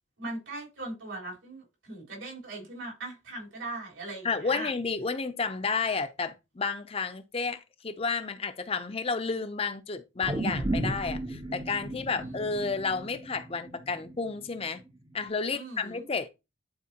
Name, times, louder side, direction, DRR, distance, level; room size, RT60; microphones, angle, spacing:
voice 1, 0.2-4.7 12.1-12.3 15.5-16.0, right 2 dB, 75° right, 4.0 m, -39 dB
voice 2, 4.2-14.8 15.1-16.3, left 4 dB, 30° left, 0.5 m, -31 dB
sound 1, 10.2-14.7 15.1-15.2, right 1 dB, 20° right, 0.6 m, -34 dB
11.0 x 4.3 x 2.9 m
head